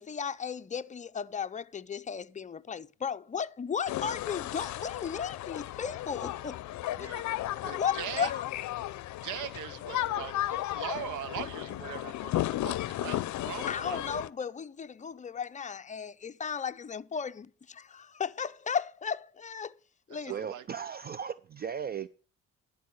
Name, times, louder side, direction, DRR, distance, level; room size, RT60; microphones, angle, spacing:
voice 1, 0.0-6.6 7.0-7.1 7.7-8.4 13.7-19.8 20.1-20.3, left 7 dB, 25° left, 0.5 m, -35 dB
sound 1, 3.9-14.3, left 14 dB, 70° left, 0.6 m, -34 dB
voice 2, 7.0-8.3 9.2-14.0 20.3-20.6, right 10 dB, 85° right, 0.8 m, -41 dB
voice 3, 20.3-22.1, right 7 dB, 30° right, 0.4 m, -36 dB
11.5 x 4.8 x 7.7 m
cardioid pair, 90°, 30 cm